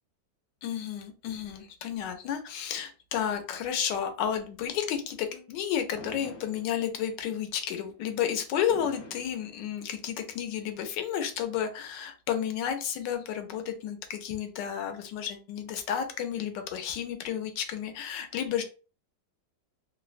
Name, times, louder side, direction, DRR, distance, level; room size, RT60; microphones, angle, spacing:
voice 1, 0.6-18.6, left 9 dB, 80° left, 6 dB, 1.2 m, -32 dB
Fireworks, 5.9-7.2 8.7-10.2, left 1 dB, 55° left, 1.0 m, -47 dB
3.2 x 2.0 x 2.4 m, 0.35 s
omnidirectional pair, 1.9 m